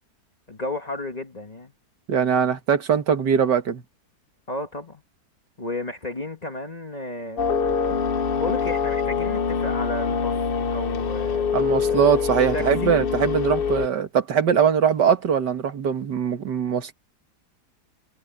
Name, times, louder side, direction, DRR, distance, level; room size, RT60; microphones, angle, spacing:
voice 1, 0.5-1.7 4.5-5.0 5.6-7.4 8.2-10.4 10.7-12.2 12.5-13.0, left 2 dB, 25° left, 1.5 m, -33 dB
voice 2, 2.1-3.8 11.5-16.9, right 7 dB, 85° right, 2.3 m, -21 dB
sound 1, 7.4-13.9, left 6 dB, 45° left, 0.7 m, -24 dB
omnidirectional pair, 1.8 m